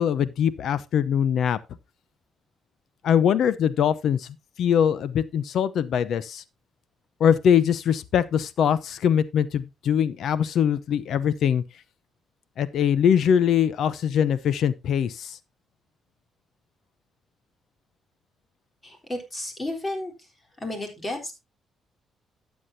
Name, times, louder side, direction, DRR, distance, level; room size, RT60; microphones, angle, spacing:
voice 1, 0.0-1.6 3.0-4.3 4.6-6.4 7.2-11.6 12.6-15.4, left 8 dB, 70° left, 0.8 m, -22 dB
voice 2, 18.8-20.1 20.6-21.3, left 1 dB, 25° left, 3.9 m, -32 dB
12.5 x 8.5 x 2.7 m
cardioid pair, 90°, 0 cm